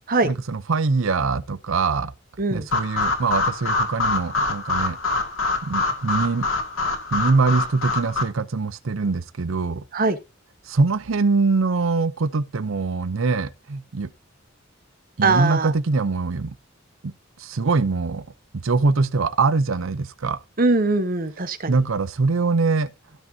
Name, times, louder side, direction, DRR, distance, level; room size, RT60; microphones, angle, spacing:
voice 1, 0.2-2.1 2.5-5.0 5.6-6.5 7.1-9.8 10.7-14.1 15.2-16.5 17.0-17.1 17.4-18.2 18.5-20.4 21.7-22.9, right 4 dB, 80° right, 0.6 m, -23 dB
sound 1, 2.7-8.2, left 3 dB, 85° left, 2.3 m, -25 dB
voice 2, 15.2-15.7 20.6-21.8, right 3 dB, 45° right, 1.1 m, -21 dB
17.0 x 6.2 x 2.8 m
head